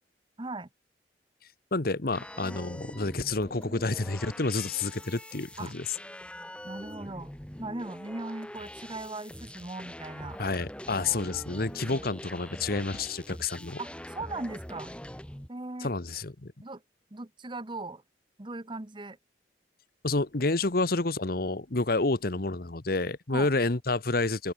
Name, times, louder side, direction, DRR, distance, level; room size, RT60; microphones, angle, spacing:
voice 1, 0.4-0.7 2.4-2.6 5.6-5.7 6.6-7.3 7.6-10.4 11.8-12.0 13.8-14.9 15.5-15.9 16.6-16.8 17.1-18.0 18.4-19.2 23.3-23.5, right 2 dB, 25° right, 1.1 m, -39 dB
voice 2, 1.7-5.8 10.4-13.8 15.8-16.5 20.0-24.5, left 3 dB, 55° left, 1.3 m, -29 dB
sound 1, 2.1-15.5, left 1 dB, 5° left, 1.8 m, -44 dB
open air
head